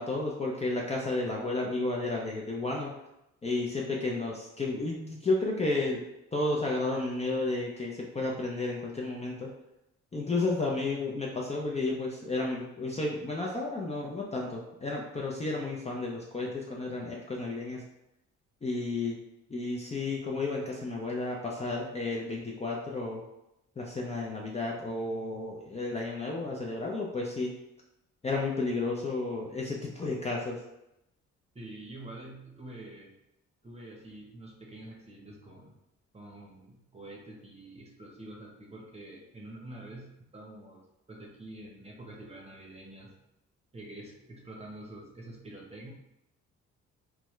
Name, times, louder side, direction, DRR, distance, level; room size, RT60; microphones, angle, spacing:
voice 1, 0.0-2.9 3.4-6.0 6.3-9.5 10.1-17.8 18.6-19.2 19.5-23.2 23.8-27.5 28.2-30.6, left 2 dB, 20° left, -2 dB, 0.5 m, -32 dB
voice 2, 31.5-33.1 33.6-35.8 36.1-40.8 41.1-43.2 43.7-45.9, right 1 dB, 20° right, -1 dB, 0.8 m, -46 dB
3.5 x 2.1 x 3.1 m, 0.87 s
cardioid pair, 90°, 30 cm